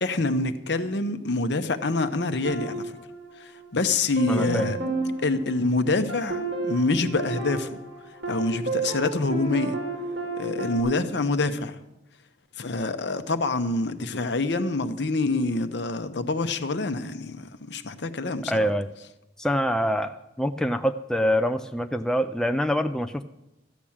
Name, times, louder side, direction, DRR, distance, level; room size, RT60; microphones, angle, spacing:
voice 1, 0.0-3.0 3.4-4.8 5.2-7.7 8.3-9.8 10.4-11.8 12.6-18.7, left 3 dB, 65° left, 10 dB, 0.8 m, -26 dB
sound 1, 2.4-3.7 4.2-10.8, right 3 dB, 60° right, 3.1 m, -32 dB
voice 2, 4.3-4.7 18.5-18.9 19.4-23.2, equal, 5° left, 7 dB, 0.3 m, -25 dB
13.5 x 6.0 x 8.7 m, 0.92 s
head